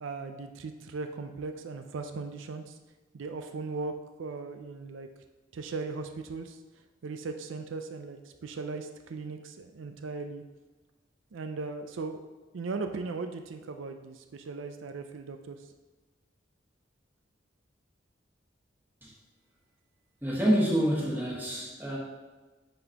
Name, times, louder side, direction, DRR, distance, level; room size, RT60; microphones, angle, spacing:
voice 1, 0.0-2.8 3.1-3.9 4.2-5.1 5.5-6.6 7.0-10.4 11.3-12.2 12.5-15.6, right 4 dB, 85° right, 6 dB, 0.5 m, -38 dB
voice 2, 20.2-22.0, equal, 10° right, -4 dB, 1.3 m, -27 dB
10.5 x 4.1 x 2.9 m, 1.2 s
head